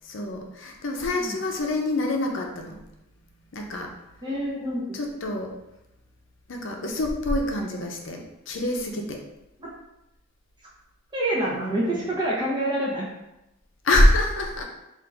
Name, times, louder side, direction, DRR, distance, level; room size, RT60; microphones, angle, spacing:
voice 1, 0.0-2.8 3.5-3.9 4.9-5.5 6.5-9.2 11.5-12.0 13.8-14.6, left 1 dB, 65° left, 1 dB, 0.6 m, -25 dB
voice 2, 0.9-1.4 4.2-5.1 9.6-9.7 11.1-13.1, right 1 dB, 20° right, -5 dB, 0.6 m, -27 dB
3.5 x 2.5 x 3.9 m, 0.92 s
head